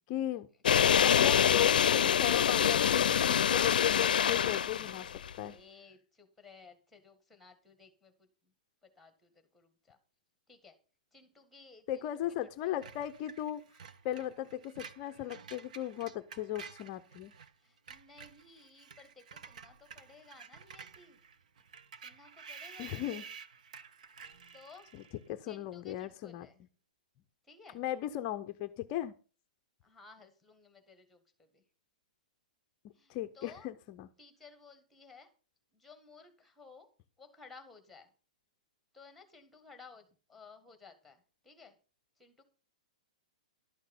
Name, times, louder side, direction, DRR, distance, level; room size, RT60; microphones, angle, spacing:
voice 1, 0.1-0.5 0.9-5.6 11.9-13.6 14.0-17.3 22.8-23.2 24.9-25.0 25.3-26.5 27.7-29.1 33.1-34.1, left 12 dB, 25° left, 9 dB, 0.6 m, -37 dB
sound 1, 0.6-5.3, left 8 dB, 85° left, 0.5 m, -26 dB
voice 2, 5.3-8.1 8.8-10.0 10.5-10.7 11.1-12.1 12.6-12.7 17.6-21.2 22.0-23.2 24.5-24.9 25.4-26.6 27.4-27.8 29.8-31.6 32.9-33.7 34.2-35.3 35.7-36.9 37.2-38.1 38.9-41.8 42.2-42.4, left 4 dB, ahead, 8 dB, 1.6 m, -57 dB
Screech, 12.8-17.5 17.8-25.2, right 6 dB, 60° right, 1.2 m, -51 dB
12.0 x 6.4 x 7.0 m, 0.36 s
hypercardioid pair, 175°, 5 cm